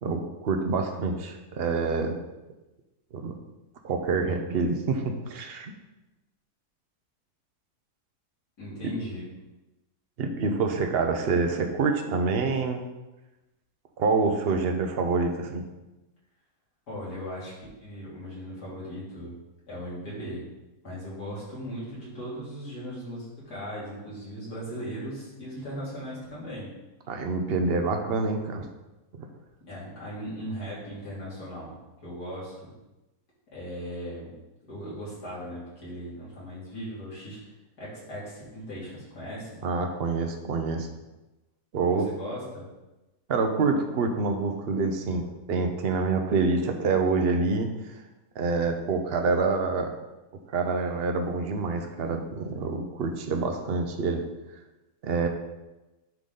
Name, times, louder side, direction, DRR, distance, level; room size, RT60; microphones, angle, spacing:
voice 1, 0.0-2.2 3.1-3.3 3.8-5.7 10.2-12.8 14.0-15.6 27.1-28.7 29.2-29.3 39.6-40.9 41.7-42.1 43.3-47.7 48.4-49.9 50.5-54.2 55.0-55.3, right 4 dB, 50° right, 5 dB, 0.8 m, -26 dB
voice 2, 8.6-9.3 16.9-17.5 17.8-19.3 19.7-20.5 20.8-26.7 29.7-31.8 32.0-32.7 33.5-34.3 34.7-37.4 37.8-39.6 41.9-42.7, equal, 80° left, -7 dB, 3.3 m, -38 dB
10.5 x 3.9 x 3.9 m, 1.0 s
omnidirectional pair, 1.7 m